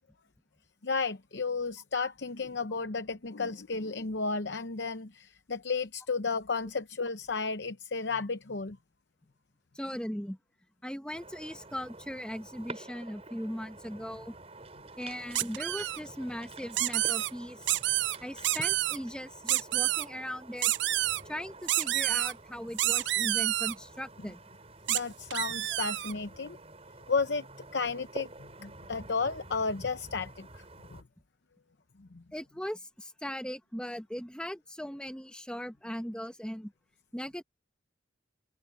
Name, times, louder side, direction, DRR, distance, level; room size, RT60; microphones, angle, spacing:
voice 1, 0.8-8.8 24.9-26.6 27.1-27.5 27.7-30.6 30.9-31.0 32.0-32.2, left 4 dB, 65° left, 0.8 m, -33 dB
voice 2, 9.7-10.4 10.8-14.4 15.0-17.7 18.2-20.7 21.2-24.4 30.1-30.2 32.3-36.7 37.1-37.4, equal, 5° left, 1.2 m, -39 dB
sound 1, 11.1-31.0, right 2 dB, 30° right, 7.3 m, -49 dB
sound 2, 15.3-16.0 16.7-17.3 17.7-18.2 18.4-19.0 19.5-20.0 20.6-21.2 21.7-22.3 22.8-23.7 24.9-25.0 25.3-26.1, right 16 dB, 65° right, 0.4 m, -28 dB
head